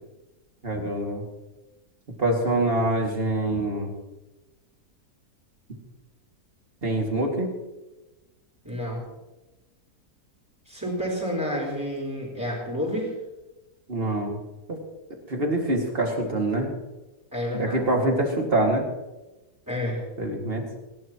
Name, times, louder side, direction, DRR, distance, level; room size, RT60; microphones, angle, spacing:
voice 1, 0.6-1.2 2.2-3.9 6.8-7.5 13.9-14.4 14.7-14.8 15.3-16.7 17.5-18.8 20.2-20.6, right 1 dB, 35° right, 1 dB, 2.5 m, -25 dB
voice 2, 8.6-9.0 10.7-13.1 17.3-17.9 19.7-20.0, equal, 10° right, -9 dB, 4.1 m, -30 dB
29.0 x 11.5 x 3.0 m, 1.1 s
omnidirectional pair, 1.7 m